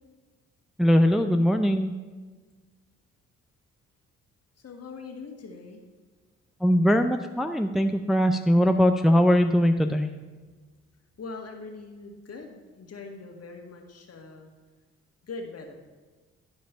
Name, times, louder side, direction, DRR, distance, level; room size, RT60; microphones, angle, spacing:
voice 1, 0.8-1.9 6.6-10.1, equal, ahead, 6 dB, 0.6 m, -21 dB
voice 2, 4.6-5.8 11.2-14.5 15.2-15.7, left 3 dB, 50° left, 3 dB, 1.7 m, -41 dB
11.0 x 5.2 x 5.6 m, 1.3 s
hypercardioid pair, 45°, 33 cm